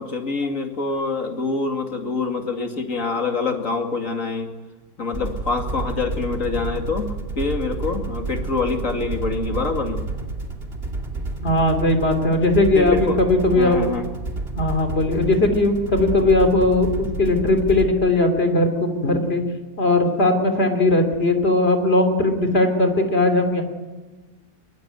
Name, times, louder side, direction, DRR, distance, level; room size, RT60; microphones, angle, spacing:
voice 1, 0.0-4.5 5.0-10.0 12.7-13.2 13.5-14.1, left 4 dB, 55° left, 4 dB, 2.8 m, -25 dB
sound 1, 5.1-17.9, right 3 dB, 40° right, 2.8 m, -30 dB
voice 2, 11.4-13.9 14.6-19.4 19.8-23.6, left 2 dB, 40° left, 6 dB, 3.4 m, -19 dB
22.5 x 22.5 x 9.3 m, 1.3 s
omnidirectional pair, 1.6 m